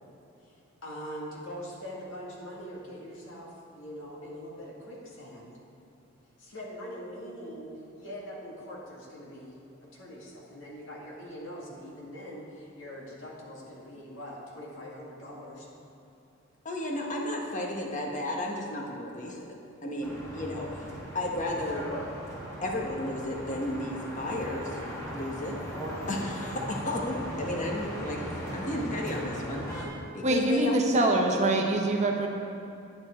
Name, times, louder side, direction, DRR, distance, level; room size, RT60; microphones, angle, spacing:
voice 1, 0.8-5.6 6.4-15.7, equal, 70° left, -4 dB, 2.2 m, -42 dB
voice 2, 16.6-19.4 19.8-20.9 21.1-21.9 22.6-24.8 25.1-25.6 26.1-28.2 28.5-29.9 30.1-31.1, left 1 dB, 40° left, 0 dB, 1.4 m, -33 dB
sound 1, 20.0-29.9, equal, 15° left, 1.8 m, -38 dB
voice 3, 30.2-32.3, right 2 dB, 35° right, 1 dB, 1.0 m, -24 dB
10.0 x 9.8 x 4.5 m, 2.7 s
head